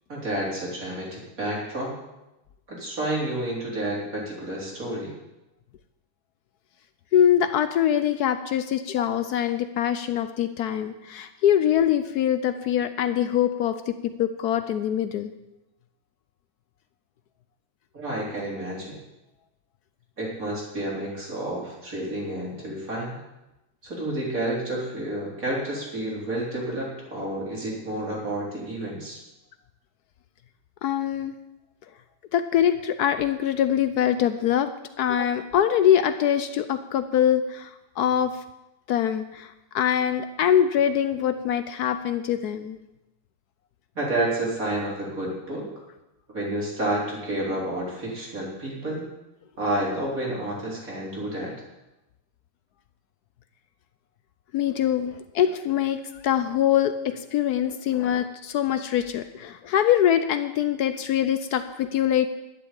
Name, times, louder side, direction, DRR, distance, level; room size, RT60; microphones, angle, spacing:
voice 1, 0.1-1.9 2.7-5.1 17.9-19.0 20.2-23.2 23.8-29.2 44.0-45.7 46.3-49.1 49.6-51.5, right 1 dB, 40° right, -4 dB, 4.0 m, -30 dB
voice 2, 7.1-15.3 30.8-31.3 32.3-34.7 35.0-37.7 38.0-38.3 38.9-42.8 54.5-62.3, left 10 dB, 80° left, 10 dB, 0.8 m, -23 dB
11.5 x 7.7 x 8.2 m, 0.98 s
omnidirectional pair, 2.4 m